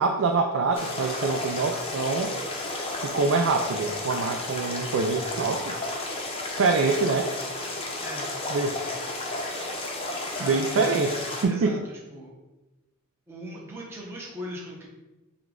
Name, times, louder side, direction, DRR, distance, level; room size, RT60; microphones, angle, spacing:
voice 1, 0.0-2.3 3.0-5.7 6.5-7.3 8.5-8.8 10.4-11.1 11.4-11.8, right 4 dB, 70° right, 3 dB, 0.3 m, -25 dB
sound 1, 0.7-11.4, left 2 dB, 25° left, 0.6 m, -32 dB
voice 2, 10.3-11.8 12.1-12.4 13.3-14.9, equal, 10° right, -4 dB, 0.7 m, -38 dB
5.1 x 2.3 x 3.7 m, 1.1 s
head